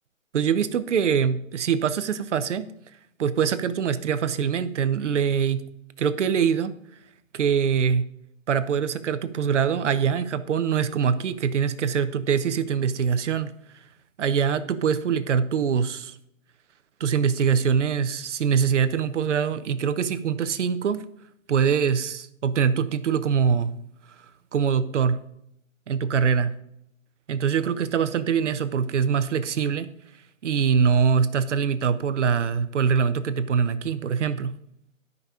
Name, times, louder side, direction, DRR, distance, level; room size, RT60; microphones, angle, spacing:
voice 1, 0.3-2.7 3.2-5.7 6.0-6.8 7.3-8.1 8.5-13.5 14.2-16.1 17.0-21.0 21.5-23.7 24.5-25.2 25.9-26.5 27.3-29.9 30.4-34.5, right 7 dB, 60° right, 12 dB, 0.9 m, -23 dB
12.0 x 5.5 x 4.9 m, 0.75 s
hypercardioid pair, 160°, 40 cm